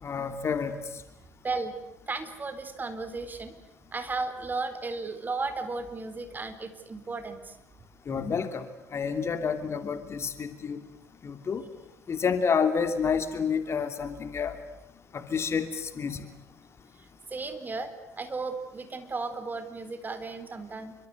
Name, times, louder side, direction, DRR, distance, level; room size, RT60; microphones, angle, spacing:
voice 1, 0.0-0.8 8.1-8.6 8.9-10.8 11.2-11.6 12.1-14.6 15.1-16.3, left 6 dB, 35° left, 9 dB, 3.0 m, -29 dB
voice 2, 1.4-1.8 2.1-3.6 3.9-7.6 17.3-20.9, right 3 dB, 20° right, 10 dB, 4.2 m, -34 dB
29.0 x 25.0 x 8.1 m, 0.87 s
figure-of-eight pair, 65°, 8 cm